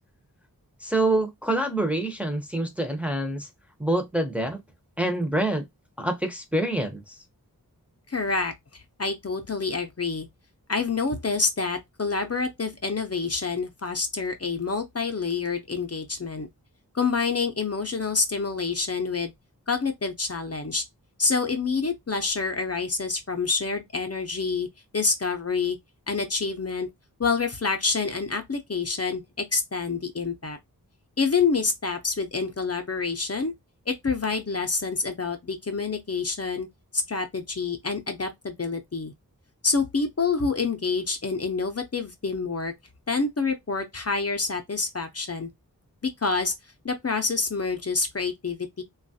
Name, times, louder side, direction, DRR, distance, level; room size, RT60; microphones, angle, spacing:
voice 1, 0.8-3.5 3.8-4.6 5.0-5.7 6.0-7.1, right 1 dB, 5° right, 0.6 m, -26 dB
voice 2, 8.1-10.3 10.7-16.5 16.9-19.3 19.7-20.8 21.2-24.7 24.9-25.8 26.1-26.9 27.2-30.6 31.2-33.5 33.9-36.7 36.9-39.1 39.6-42.7 43.1-45.5 46.0-46.5 46.8-48.8, left 4 dB, 40° left, 0.6 m, -27 dB
3.0 x 2.3 x 2.7 m
wide cardioid pair, 60°, 36 cm